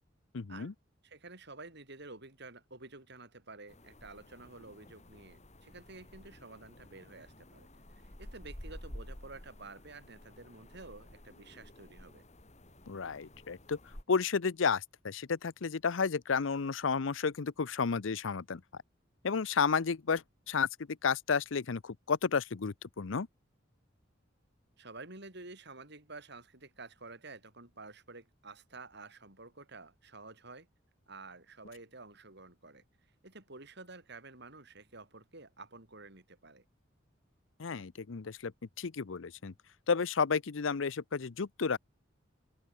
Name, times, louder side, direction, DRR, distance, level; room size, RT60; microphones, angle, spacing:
voice 1, 0.3-0.7 12.9-13.8 14.1-18.6 19.2-20.7 21.0-23.3 37.6-38.5 38.8-39.5 39.9-41.8, left 5 dB, 85° left, 0.7 m, -32 dB
voice 2, 1.0-12.2 24.8-30.7 31.1-32.8 33.2-36.6, right 3 dB, 60° right, 7.5 m, -50 dB
sound 1, 3.7-14.0, left 1 dB, 35° left, 5.1 m, -52 dB
open air
head